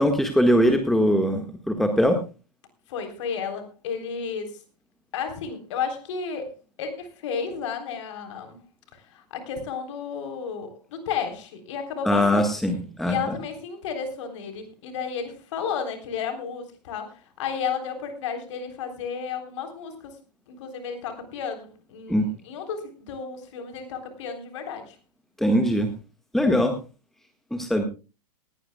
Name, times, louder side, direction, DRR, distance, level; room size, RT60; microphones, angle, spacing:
voice 1, 0.0-2.2 12.0-13.2 22.1-22.3 25.4-25.9 26.3-26.7 27.5-27.8, equal, ahead, 6 dB, 1.6 m, -21 dB
voice 2, 2.9-4.6 5.1-6.5 6.8-8.6 8.9-12.5 13.0-20.2 20.5-25.0, left 6 dB, 45° left, 7 dB, 3.7 m, -32 dB
19.0 x 17.5 x 2.3 m, 0.31 s
figure-of-eight pair, 105°, 20 cm